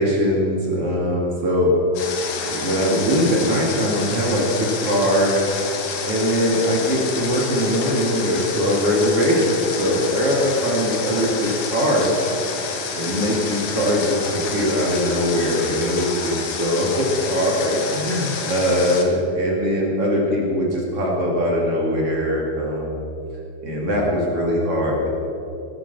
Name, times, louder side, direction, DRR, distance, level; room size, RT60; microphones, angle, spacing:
voice 1, 0.0-1.8 2.5-5.4 6.1-12.1 12.9-23.0 23.6-25.1, equal, 45° right, -2 dB, 3.0 m, -21 dB
Water, 2.0-19.0, left 5 dB, 85° left, 3.5 m, -29 dB
19.0 x 10.0 x 6.9 m, 2.8 s
omnidirectional pair, 4.2 m